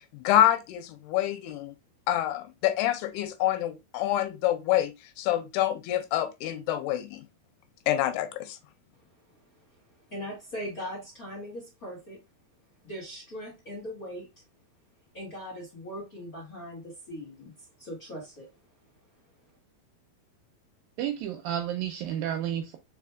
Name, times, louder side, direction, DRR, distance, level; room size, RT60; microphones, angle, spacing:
voice 1, 0.1-1.8 2.1-7.2 7.9-8.6, left 12 dB, 85° left, 2.7 m, -27 dB
voice 2, 10.1-12.2 12.8-14.3 15.1-18.5, equal, 35° left, 1.5 m, -40 dB
voice 3, 21.0-22.8, right 10 dB, 80° right, 2.2 m, -31 dB
4.8 x 4.7 x 2.3 m
omnidirectional pair, 4.5 m